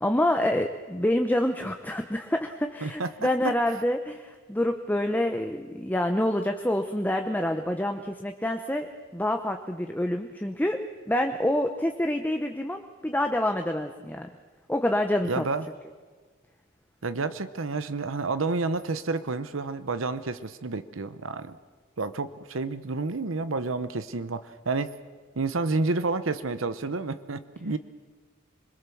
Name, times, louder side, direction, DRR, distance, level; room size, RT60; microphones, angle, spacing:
voice 1, 0.0-10.8 11.1-14.3 14.7-15.4, left 1 dB, 10° left, 5 dB, 0.8 m, -27 dB
voice 2, 15.3-15.6 17.0-21.6 22.0-24.9 25.4-27.8, right 3 dB, 75° right, 12 dB, 0.9 m, -30 dB
27.0 x 21.0 x 7.1 m, 1.5 s
head